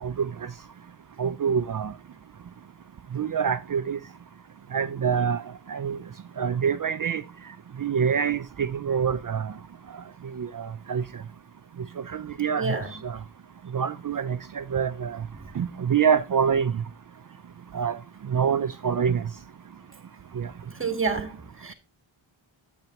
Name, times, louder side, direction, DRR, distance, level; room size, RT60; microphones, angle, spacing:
voice 1, 1.2-1.9 3.1-4.0 4.7-5.4 5.7-6.0 6.4-7.2 7.8-9.5 10.4-11.0 12.1-13.2 13.7-15.2 15.6-16.7 17.7-18.0 18.3-19.2 20.4-20.5, right 7 dB, 45° right, 0.5 m, -26 dB
voice 2, 20.8-21.7, right 4 dB, 25° right, 1.7 m, -28 dB
9.0 x 8.1 x 2.9 m
wide cardioid pair, 65°, 47 cm